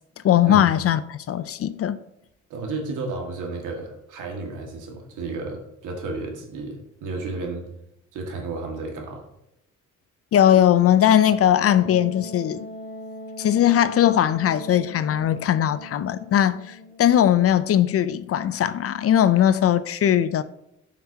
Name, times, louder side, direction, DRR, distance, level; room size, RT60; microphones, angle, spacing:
voice 1, 0.2-2.0 10.3-12.6 13.4-20.4, left 10 dB, 50° left, 0.5 m, -19 dB
voice 2, 2.5-7.7 8.1-9.3, right 3 dB, 80° right, 1.9 m, -32 dB
Wind instrument woodwind instrument, 11.6-17.1, left 1 dB, 25° left, 2.9 m, -39 dB
11.5 x 5.9 x 2.8 m
cardioid pair, 90°, 30 cm